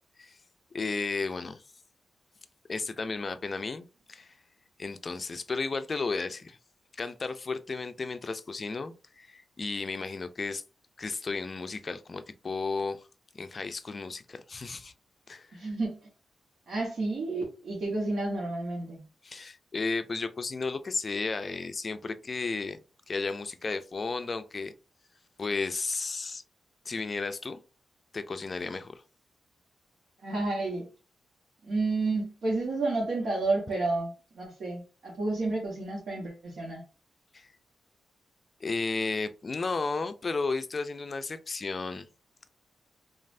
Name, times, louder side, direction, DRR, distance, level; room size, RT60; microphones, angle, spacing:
voice 1, 0.7-1.6 2.7-4.4 4.8-6.6 6.9-10.6 11.0-13.0 13.3-14.9 15.3-15.6 19.2-22.8 23.1-24.7 25.4-26.4 26.9-27.6 28.1-29.0 37.3-37.5 38.6-42.1, left 4 dB, 40° left, 0.3 m, -33 dB
voice 2, 15.5-16.0 16.7-19.0 30.2-30.9 31.6-36.8, right 2 dB, 70° right, 1.1 m, -31 dB
3.2 x 2.4 x 2.5 m
cardioid pair, 90°, 0 cm